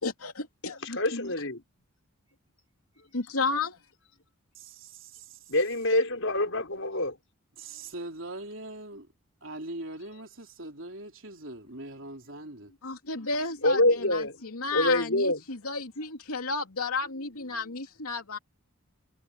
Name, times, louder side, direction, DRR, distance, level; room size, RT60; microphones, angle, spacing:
voice 1, 0.0-1.3 3.1-3.8 12.8-18.4, left 3 dB, 85° left, 2.9 m, -33 dB
voice 2, 1.0-1.6 5.5-7.2 13.6-14.4 14.7-15.4, left 1 dB, 65° left, 5.7 m, -25 dB
voice 3, 4.5-5.4 7.6-9.1 9.4-12.7, right 2 dB, 60° right, 3.8 m, -41 dB
head